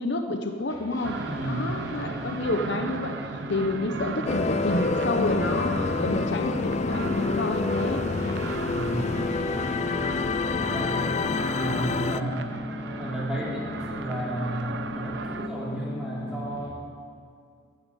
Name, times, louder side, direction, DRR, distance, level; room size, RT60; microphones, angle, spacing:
voice 1, 0.0-8.0, left 2 dB, 60° left, 5 dB, 0.8 m, -29 dB
sound 1, 0.7-16.7, left 1 dB, 15° left, 2.3 m, -40 dB
sound 2, 1.0-15.5, right 4 dB, 55° right, 0.5 m, -36 dB
voice 2, 1.2-1.7 8.7-9.1 10.6-11.2 11.6-12.4 13.0-16.8, right 1 dB, 5° right, -6 dB, 3.3 m, -33 dB
sound 3, 4.3-12.2, left 4 dB, 35° left, 0.3 m, -27 dB
13.0 x 9.7 x 9.0 m, 2.3 s
head